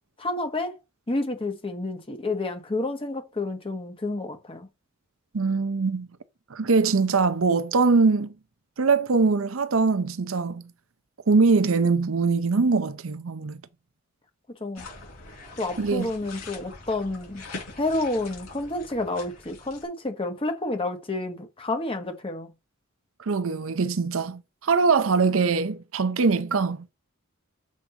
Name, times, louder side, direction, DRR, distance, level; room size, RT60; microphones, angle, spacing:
voice 1, 0.2-0.8 1.1-4.7 14.6-14.9 15.6-17.4 17.8-22.5, left 2 dB, 25° left, 1.1 m, -29 dB
voice 2, 5.3-6.1 6.5-8.3 8.8-10.7 11.3-13.6 15.8-16.1 23.3-26.8, right 4 dB, 70° right, 0.6 m, -22 dB
sound 1, 14.8-19.9, left 3 dB, 80° left, 4.3 m, -43 dB
7.3 x 5.2 x 2.9 m
head